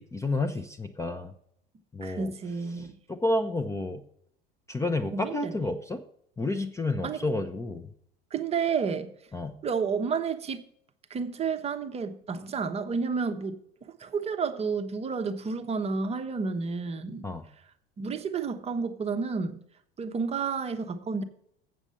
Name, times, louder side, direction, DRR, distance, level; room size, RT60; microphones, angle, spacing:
voice 1, 0.0-1.3 1.9-2.3 2.7-4.0 4.7-6.0 6.4-7.9 9.3-9.6 17.2-17.5, left 2 dB, 10° left, 0.6 m, -30 dB
voice 2, 2.0-2.9 5.1-5.5 7.0-7.2 8.3-9.1 9.6-10.6 11.1-17.3 18.0-19.6 20.0-21.2, right 5 dB, 20° right, 0.8 m, -31 dB
7.6 x 7.2 x 6.7 m
figure-of-eight pair, 80°, 29 cm